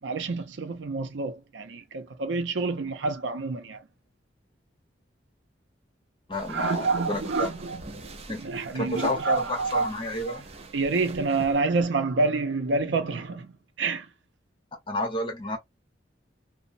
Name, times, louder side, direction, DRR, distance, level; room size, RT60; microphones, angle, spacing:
voice 1, 0.0-3.8 6.5-7.8 8.4-9.9 10.3-10.4 10.7-14.1, right 3 dB, 80° right, 0.5 m, -28 dB
voice 2, 6.3-7.5 8.3-8.4 8.7-10.4 14.9-15.6, left 1 dB, 25° left, 0.9 m, -30 dB
sound 1, 6.3-11.6, right 2 dB, 35° right, 0.5 m, -45 dB
3.0 x 2.0 x 2.5 m
head